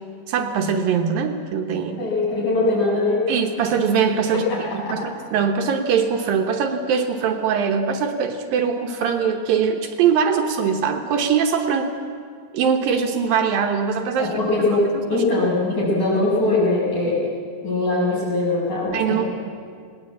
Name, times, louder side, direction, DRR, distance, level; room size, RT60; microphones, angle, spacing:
voice 1, 0.3-2.0 3.3-4.4 4.7-11.9 12.5-14.3 15.1-15.2 18.9-19.3, right 6 dB, 70° right, 5 dB, 2.7 m, -22 dB
voice 2, 2.0-3.3 4.3-5.0 14.2-17.2 17.6-19.3, left 2 dB, 45° left, -5 dB, 7.9 m, -21 dB
19.5 x 18.5 x 8.5 m, 2.2 s
omnidirectional pair, 4.4 m